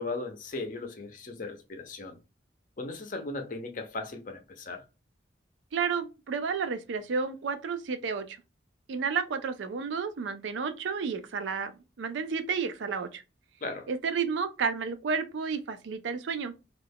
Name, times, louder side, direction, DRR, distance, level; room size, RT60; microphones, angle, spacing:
voice 1, 0.0-2.2 2.8-4.8 13.6-13.9, left 3 dB, 45° left, 0.5 m, -37 dB
voice 2, 5.7-8.4 8.9-11.7 12.0-13.2 13.9-16.5, right 5 dB, 80° right, 0.4 m, -31 dB
2.3 x 2.2 x 3.3 m
head